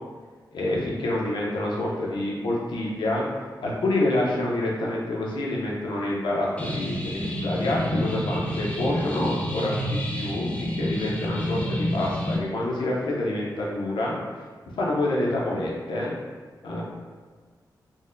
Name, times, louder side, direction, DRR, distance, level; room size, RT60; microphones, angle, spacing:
voice 1, 0.5-3.2 3.6-9.8 10.1-14.2 14.8-16.2 16.6-16.8, left 1 dB, 90° left, -4 dB, 0.6 m, -27 dB
sound 1, 6.6-12.4, equal, 15° left, 0.5 m, -29 dB
3.8 x 2.1 x 2.5 m, 1.5 s
wide cardioid pair, 105°, 8 cm